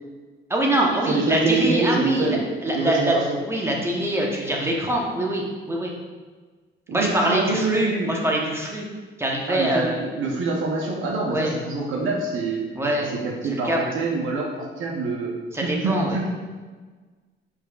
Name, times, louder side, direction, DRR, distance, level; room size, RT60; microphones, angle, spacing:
voice 1, 0.5-2.4 2.6-3.2 3.5-5.9 6.9-8.9 9.2-10.0 11.3-11.5 12.7-13.1 13.6-13.9 15.5-16.2, right 1 dB, 10° right, -2 dB, 1.0 m, -24 dB
voice 2, 1.0-2.4 2.7-3.4 6.9-8.1 9.5-12.7 13.0-15.3 15.6-16.3, right 3 dB, 80° right, -1 dB, 0.8 m, -25 dB
5.3 x 4.1 x 2.4 m, 1.4 s
cardioid pair, 90°, 20 cm